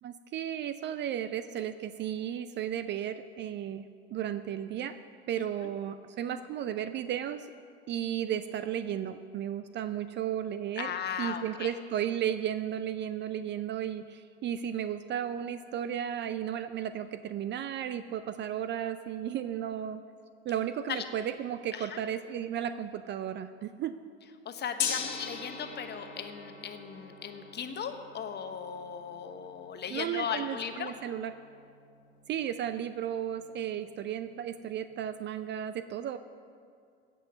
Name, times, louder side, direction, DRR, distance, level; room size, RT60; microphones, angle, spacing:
voice 1, 0.0-3.9 4.1-5.0 5.3-7.5 7.9-20.0 20.4-24.0 29.9-31.3 32.3-36.2, right 10 dB, 35° right, 12 dB, 0.5 m, -34 dB
voice 2, 5.4-5.7 10.8-11.7 20.9-21.0 21.7-22.0 24.4-30.9, left 7 dB, 30° left, 7 dB, 1.1 m, -37 dB
Gong, 24.8-35.0, left 7 dB, 75° left, 1.7 m, -42 dB
16.0 x 6.2 x 6.6 m, 2.3 s
hypercardioid pair, 75°, 33 cm